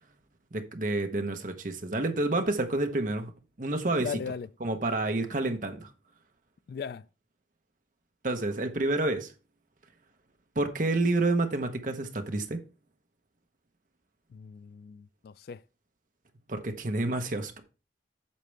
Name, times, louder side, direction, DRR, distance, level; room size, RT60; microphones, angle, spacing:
voice 1, 0.5-3.3 3.6-4.2 4.6-5.9 8.2-9.3 10.5-12.6 16.5-17.6, right 2 dB, 45° right, 1.0 m, -29 dB
voice 2, 4.0-4.5 6.7-7.1 14.3-15.6, left 6 dB, 55° left, 0.3 m, -38 dB
8.5 x 6.7 x 3.3 m
head